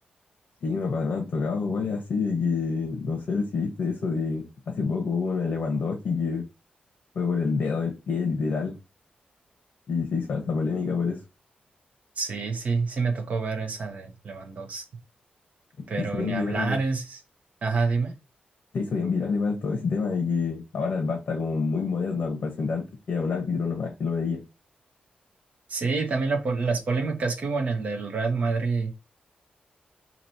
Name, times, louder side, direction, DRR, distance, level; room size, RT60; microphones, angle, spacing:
voice 1, 0.6-6.4 7.1-8.8 9.9-11.2 16.0-16.8 18.7-24.4, left 4 dB, 55° left, 1.1 m, -27 dB
voice 2, 12.2-14.8 15.9-17.2 17.6-18.1 25.7-28.9, right 4 dB, 45° right, 1.0 m, -27 dB
3.1 x 3.0 x 4.1 m
wide cardioid pair, 170°, 3 cm